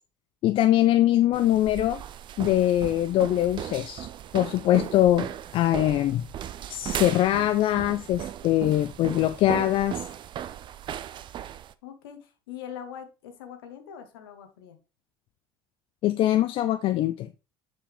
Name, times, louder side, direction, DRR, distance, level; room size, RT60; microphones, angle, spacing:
voice 1, 0.4-2.0 2.4-4.1 4.3-6.3 6.7-10.1 16.0-17.3, left 13 dB, 50° left, 10 dB, 0.4 m, -23 dB
sound 1, 1.3-11.7, right 10 dB, 40° right, 0.5 m, -37 dB
voice 2, 11.8-14.8, left 9 dB, 75° left, 6 dB, 1.1 m, -42 dB
7.5 x 4.8 x 3.3 m, 0.30 s
hypercardioid pair, 65°, 12 cm